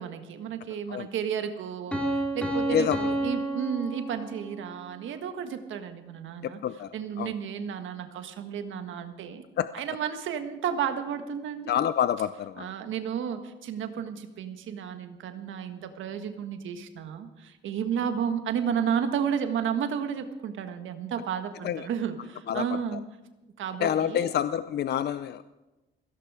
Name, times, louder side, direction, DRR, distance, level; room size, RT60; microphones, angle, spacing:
voice 1, 0.0-6.6 6.9-9.4 9.7-11.7 12.6-23.0 23.6-24.4, right 8 dB, 75° right, 8 dB, 1.6 m, -32 dB
Piano, 1.9-4.7, right 1 dB, 5° left, 3.5 m, -30 dB
voice 2, 6.4-6.9 7.2-7.3 9.6-9.7 11.7-12.7 21.6-21.8 22.5-22.6 23.8-25.4, left 9 dB, 55° left, 14 dB, 0.5 m, -27 dB
17.0 x 16.0 x 4.9 m, 1.1 s
cardioid pair, 90°, 20 cm